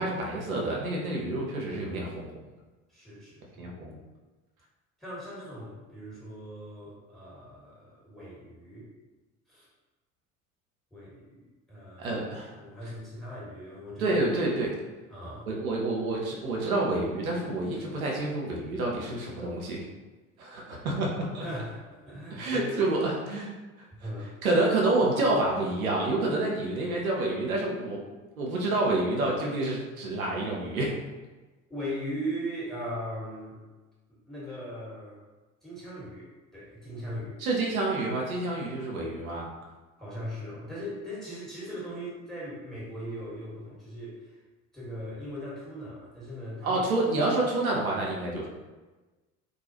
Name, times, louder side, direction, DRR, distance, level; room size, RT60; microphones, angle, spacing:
voice 1, 0.0-2.4 3.6-4.0 12.0-12.5 14.0-14.7 15.5-19.8 20.4-21.4 22.3-23.5 24.0-24.1 24.4-28.0 28.4-30.9 37.4-39.5 46.6-48.5, right 2 dB, 90° right, -2 dB, 0.5 m, -28 dB
voice 2, 2.9-3.7 5.0-8.9 9.5-9.7 10.9-12.2 12.5-14.2 15.1-15.5 21.4-22.8 23.9-24.3 29.5-29.6 31.7-33.6 34.2-35.2 35.6-37.4 40.0-44.4 44.7-46.8, equal, ahead, -8 dB, 1.4 m, -39 dB
2.3 x 2.2 x 2.8 m, 1.2 s
figure-of-eight pair, 60°, 41 cm